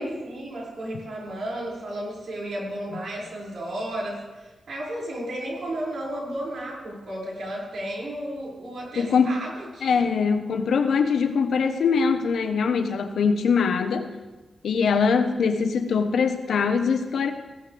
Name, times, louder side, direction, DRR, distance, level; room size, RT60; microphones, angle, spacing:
voice 1, 0.0-10.0, right 1 dB, 75° right, -4 dB, 6.2 m, -33 dB
voice 2, 9.0-9.4 9.8-14.1 14.6-17.3, left 5 dB, 90° left, 6 dB, 1.2 m, -22 dB
19.5 x 16.0 x 3.5 m, 1.2 s
wide cardioid pair, 120°, 0 cm